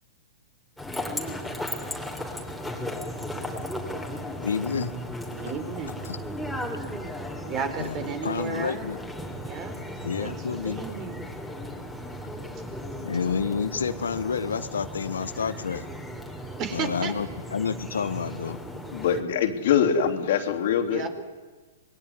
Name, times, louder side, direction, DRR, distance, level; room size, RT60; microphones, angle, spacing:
sound 1, 0.8-19.2, left 1 dB, ahead, 3.5 m, -36 dB
voice 1, 4.4-4.9 6.1-6.2 7.8-8.0 8.2-9.0 10.0-10.8 13.0-15.8 16.7-18.6, left 6 dB, 85° left, 11 dB, 1.3 m, -29 dB
voice 2, 5.4-5.9 7.4-8.9 9.4-11.3 12.5-12.6 16.6-17.1 20.9-21.1, right 6 dB, 35° right, 9 dB, 4.0 m, -34 dB
voice 3, 18.9-21.1, left 8 dB, 60° left, 5 dB, 3.2 m, -23 dB
26.0 x 21.0 x 9.8 m, 1.3 s
hypercardioid pair, 125°, 0 cm